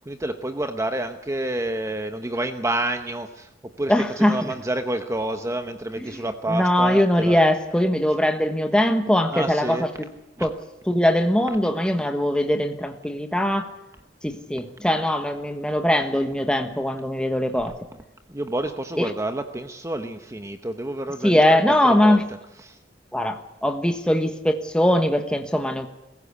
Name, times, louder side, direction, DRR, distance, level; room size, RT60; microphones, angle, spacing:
voice 1, 0.0-3.5 3.8-7.4 9.3-9.9 18.3-22.2 22.6-22.8, right 1 dB, 15° right, 7 dB, 1.0 m, -29 dB
voice 2, 3.9-4.5 6.0-6.2 6.5-10.1 10.4-10.5 10.8-13.7 14.2-17.7 19.0-19.1 21.2-22.2 23.1-25.9, left 1 dB, 5° left, 5 dB, 1.3 m, -21 dB
22.5 x 15.5 x 8.2 m, 0.95 s
head